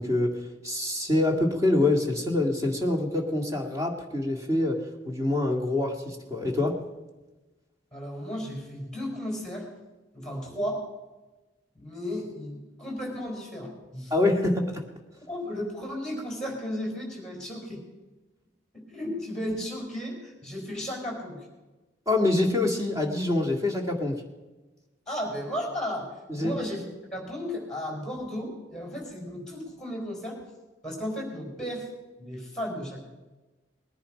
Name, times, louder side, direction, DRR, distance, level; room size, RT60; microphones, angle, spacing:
voice 1, 0.0-6.8 14.1-14.8 22.1-24.2 26.3-26.6, left 2 dB, 20° right, 2 dB, 2.0 m, -25 dB
voice 2, 7.9-9.7 10.1-10.8 11.7-14.1 15.3-17.8 18.7-21.4 25.1-26.8 27.1-30.4 30.8-31.9 32.2-33.0, equal, 5° left, -1 dB, 4.9 m, -34 dB
20.0 x 10.5 x 5.2 m, 1.1 s
head